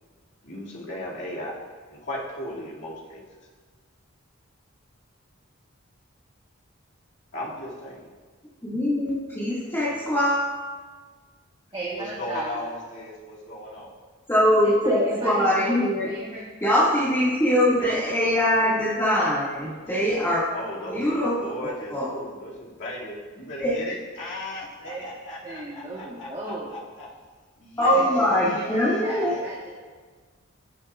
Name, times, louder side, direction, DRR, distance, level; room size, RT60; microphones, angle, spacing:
voice 1, 0.4-1.6 1.9-3.2 7.3-8.1 12.0-13.9 14.4-15.2 17.7-17.9 20.5-27.1 27.6-29.5, left 1 dB, 60° left, -5 dB, 2.2 m, -37 dB
voice 2, 8.6-10.4 14.3-16.1 16.6-20.4 20.9-21.3 21.9-22.1 23.6-23.7 27.8-29.3, equal, 15° left, -11 dB, 1.8 m, -22 dB
voice 3, 11.7-12.7 14.6-15.8 16.0-16.5 17.5-17.6 24.8-26.7 27.9-28.0 28.4-29.7, right 2 dB, 25° right, -4 dB, 1.2 m, -36 dB
16.5 x 7.3 x 2.4 m, 1.5 s
head